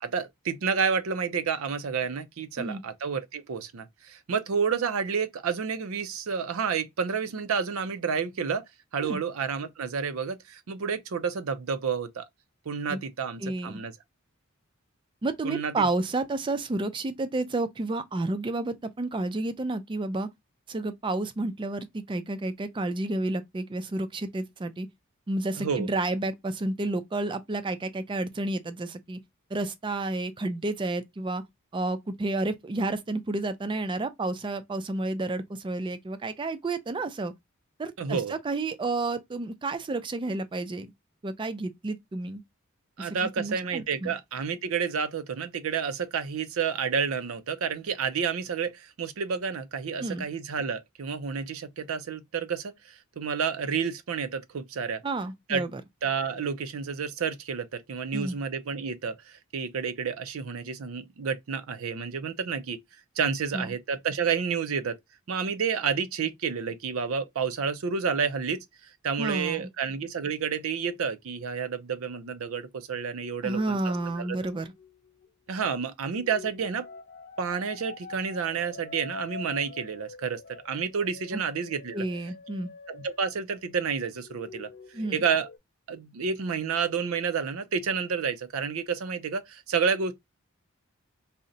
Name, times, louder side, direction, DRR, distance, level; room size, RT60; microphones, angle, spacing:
voice 1, 0.0-8.6 8.9-12.3 12.7-13.9 15.4-15.7 25.6-25.9 38.0-38.3 43.0-55.0 55.5-55.6 56.0-62.8 63.2-65.0 65.3-68.6 69.0-74.4 75.5-76.8 77.4-82.0 82.9-84.7 85.1-85.5 85.9-90.1, right 6 dB, 80° right, 0.5 m, -30 dB
voice 2, 13.4-13.8 15.2-20.3 20.7-24.9 25.3-29.2 29.5-31.4 31.7-37.3 37.8-40.9 41.2-42.4 43.0-44.1 50.0-50.2 55.0-55.8 58.1-58.4 63.5-63.7 69.2-69.7 73.4-74.7 81.9-82.7 84.9-85.2, right 2 dB, 25° right, 0.3 m, -31 dB
sound 1, 73.4-75.5 76.1-83.8 84.1-85.6, left 4 dB, 50° left, 0.4 m, -46 dB
2.7 x 2.0 x 3.8 m
head